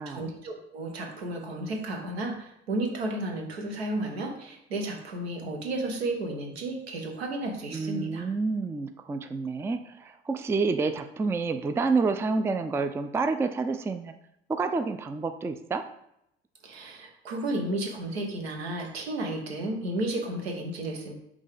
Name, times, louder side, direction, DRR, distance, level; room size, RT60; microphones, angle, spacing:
voice 1, 0.1-8.2 16.6-21.1, right 2 dB, 80° right, 2 dB, 1.1 m, -33 dB
voice 2, 7.7-14.1 14.5-15.8, right 4 dB, 10° right, 9 dB, 0.3 m, -28 dB
5.4 x 3.7 x 5.0 m, 0.78 s
figure-of-eight pair, 55°, 31 cm